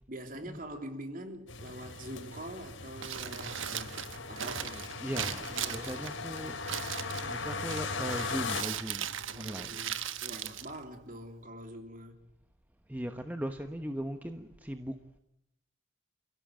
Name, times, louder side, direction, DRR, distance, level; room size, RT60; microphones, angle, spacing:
voice 1, 0.1-5.0 5.5-6.1 9.3-12.2, right 1 dB, 40° right, 3.3 m, -45 dB
sound 1, 1.5-8.6, left 4 dB, 70° left, 3.8 m, -38 dB
Crumpling crinkling, 2.9-11.4, right 9 dB, 75° right, 1.3 m, -39 dB
voice 2, 5.0-6.6 7.3-9.9 12.9-15.0, equal, 10° right, 1.1 m, -39 dB
28.5 x 16.5 x 9.1 m
head